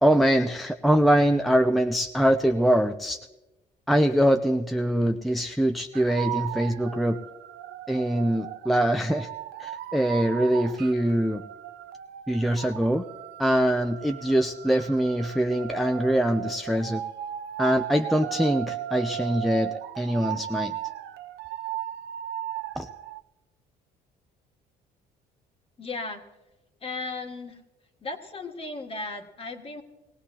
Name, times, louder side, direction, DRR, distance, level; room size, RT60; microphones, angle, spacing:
voice 1, 0.0-3.2 3.9-7.2 7.9-9.3 9.6-11.4 12.3-13.0 13.4-17.0 17.6-20.7 22.8-22.9, equal, ahead, 6 dB, 0.5 m, -23 dB
sound 1, 5.9-23.2, right 12 dB, 80° right, 0.6 m, -36 dB
voice 2, 25.8-26.2 26.8-27.6 28.0-29.8, left 3 dB, 35° left, 5 dB, 1.7 m, -35 dB
20.0 x 17.0 x 2.9 m, 1.0 s
cardioid pair, 110°, 17 cm